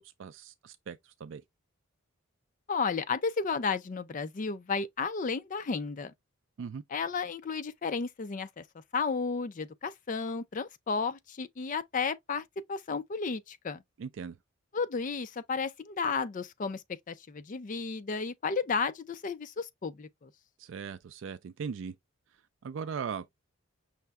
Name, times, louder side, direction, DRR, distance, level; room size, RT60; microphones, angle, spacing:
voice 1, 0.0-1.4 6.6-6.8 14.0-14.4 20.6-21.9 22.6-23.3, right 6 dB, 60° right, 0.3 m, -39 dB
voice 2, 2.7-6.1 6.9-8.6 8.9-13.8 14.7-20.3, left 5 dB, 35° left, 0.4 m, -33 dB
5.6 x 2.1 x 3.4 m
head